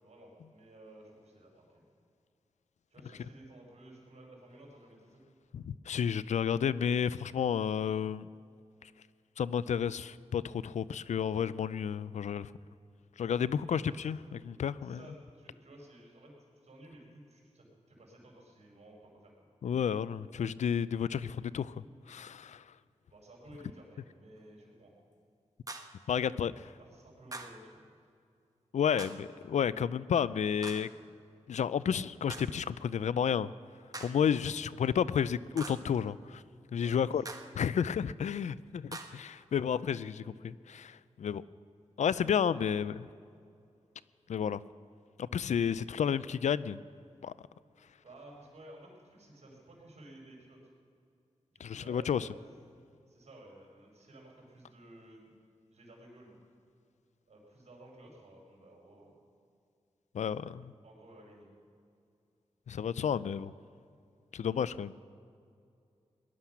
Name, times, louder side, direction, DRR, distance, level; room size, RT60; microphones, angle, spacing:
voice 1, 0.0-1.9 2.9-5.2 13.7-14.1 14.8-16.3 16.6-19.3 23.1-24.9 26.8-27.8 34.3-34.4 36.8-37.3 42.6-43.1 48.0-50.6 51.5-52.4 53.1-55.3 55.7-56.3 57.3-59.1 60.8-61.5, right 1 dB, 65° right, -1 dB, 5.3 m, -54 dB
voice 2, 5.5-8.3 8.8-8.9 9.4-12.5 13.2-14.2 14.4-15.0 19.6-22.6 26.1-26.7 28.7-30.9 31.5-33.5 34.0-36.4 36.7-37.2 37.6-41.4 42.0-43.0 44.3-44.6 45.2-46.8 47.2-47.3 51.6-52.3 60.1-60.7 62.7-63.5 64.3-64.9, left 8 dB, 75° left, 18 dB, 0.4 m, -31 dB
sound 1, 25.7-26.0 27.3-27.7 29.0-29.3 30.6-31.0 32.3-32.6 33.9-34.3 35.6-36.0 37.2-37.6 38.9-39.3, right 2 dB, 30° right, 1.3 m, -44 dB
19.0 x 11.5 x 6.0 m, 2.4 s
cardioid pair, 50°, 12 cm